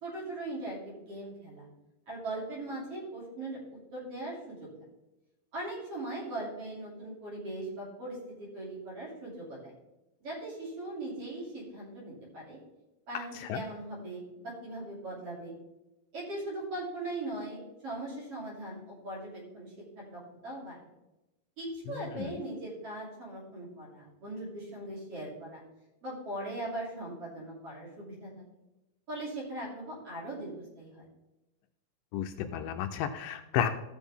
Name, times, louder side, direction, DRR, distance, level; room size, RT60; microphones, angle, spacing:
voice 1, 0.0-1.7 2.1-4.7 5.5-9.7 10.2-12.6 13.1-15.6 16.1-20.8 21.6-25.6 26.0-28.4 29.1-31.1, right 2 dB, 40° right, -4 dB, 3.7 m, -40 dB
voice 2, 21.9-22.3 32.1-33.7, left 9 dB, 80° left, 6 dB, 2.2 m, -32 dB
15.5 x 6.1 x 3.6 m, 0.98 s
omnidirectional pair, 4.1 m